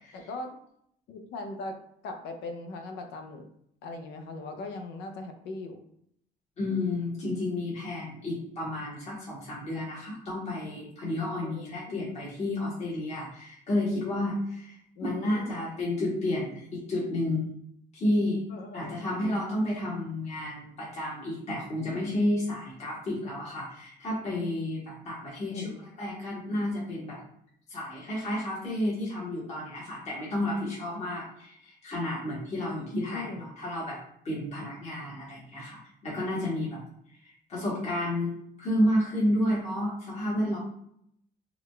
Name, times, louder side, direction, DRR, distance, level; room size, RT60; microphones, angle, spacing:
voice 1, 0.1-0.5 1.1-1.8 2.0-3.4 3.8-5.8 11.4-12.2 15.0-15.7 18.5-19.4 25.5-26.1 33.1-33.5 37.5-37.7, left 2 dB, 80° left, 6 dB, 0.6 m, -40 dB
voice 2, 6.6-14.7 15.0-17.5 17.9-18.4 18.7-25.7 26.0-27.2 27.7-34.0 34.2-36.8 37.5-40.6, left 1 dB, 40° left, -7 dB, 1.3 m, -31 dB
3.8 x 2.3 x 3.2 m, 0.72 s
cardioid pair, 110°, 17 cm